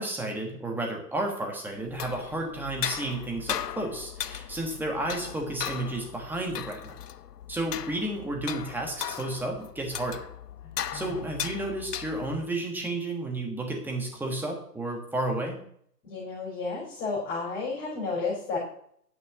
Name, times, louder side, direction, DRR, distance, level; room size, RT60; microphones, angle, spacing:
voice 1, 0.0-7.0 7.5-10.2 10.9-15.6, right 2 dB, 5° right, 1 dB, 1.4 m, -32 dB
sound 1, 1.8-12.5, left 9 dB, 70° left, 0.8 m, -37 dB
voice 2, 10.6-11.2 16.0-18.6, left 4 dB, 25° left, -5 dB, 3.9 m, -32 dB
9.3 x 6.1 x 6.9 m, 0.65 s
hypercardioid pair, 140°, 49 cm